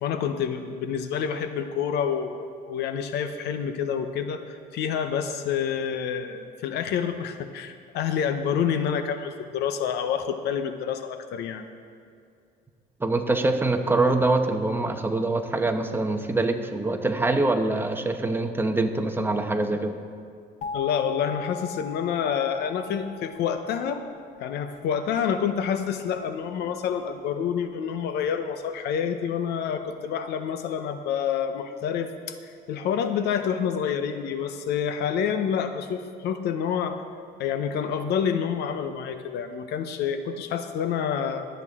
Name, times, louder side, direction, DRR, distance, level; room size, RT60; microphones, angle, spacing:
voice 1, 0.0-11.7 20.7-24.0 24.4-37.0 37.4-41.5, left 7 dB, 75° left, 9 dB, 0.8 m, -28 dB
voice 2, 13.0-20.0, right 2 dB, 15° right, 5 dB, 1.0 m, -24 dB
sound 1, 20.6-25.3, left 6 dB, 50° left, 0.6 m, -39 dB
21.5 x 8.2 x 3.7 m, 2.4 s
cardioid pair, 110°, 17 cm